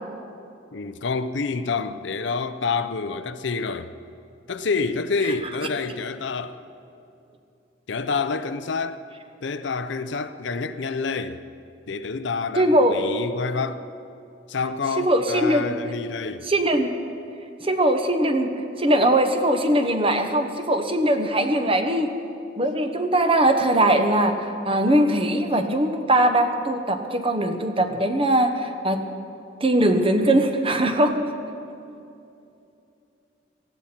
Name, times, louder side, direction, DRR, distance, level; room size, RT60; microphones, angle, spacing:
voice 1, 0.7-3.9 4.5-6.6 7.9-9.0 9.4-11.4 11.9-13.8 14.5-16.5, left 4 dB, 65° left, 0.6 m, -28 dB
voice 2, 12.6-13.0 15.0-15.8 16.5-16.9 17.6-18.5 18.8-22.1 22.6-29.0 29.6-31.3, right 1 dB, 30° right, 1.0 m, -21 dB
18.0 x 14.5 x 4.4 m
head